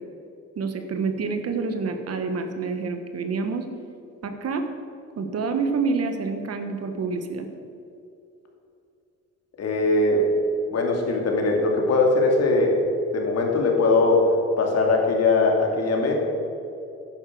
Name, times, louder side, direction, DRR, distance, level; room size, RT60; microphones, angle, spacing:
voice 1, 0.6-3.6 4.2-4.6 5.2-7.5, right 4 dB, 55° right, 7 dB, 1.4 m, -27 dB
voice 2, 9.6-10.3 10.7-12.8 13.1-14.3 14.6-16.1, left 3 dB, 55° left, 1 dB, 2.6 m, -20 dB
10.5 x 9.8 x 6.2 m, 2.6 s
cardioid pair, 90°, 30 cm